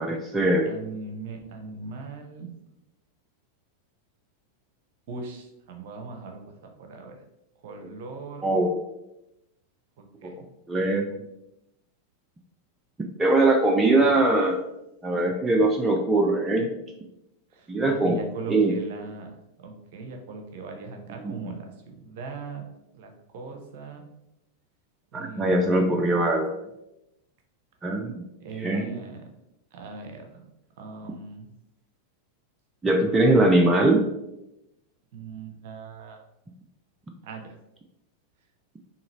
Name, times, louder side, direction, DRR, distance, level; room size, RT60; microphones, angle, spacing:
voice 1, 0.0-0.7 8.4-8.7 10.2-10.3 10.7-11.2 13.2-14.6 15.0-16.7 17.7-18.2 18.5-18.7 21.2-21.4 25.1-26.5 27.8-28.2 28.6-29.0 32.8-34.0, right 2 dB, 15° right, 2 dB, 0.4 m, -21 dB
voice 2, 0.6-2.5 5.1-7.2 7.6-8.5 10.0-10.4 13.9-14.2 17.5-22.6 22.9-24.0 25.1-26.0 28.4-29.2 29.7-30.5 30.8-31.5 35.1-36.2 37.2-37.5, right 4 dB, 50° right, 4 dB, 0.7 m, -39 dB
3.8 x 2.8 x 3.0 m, 0.88 s
figure-of-eight pair, 90°, 0 cm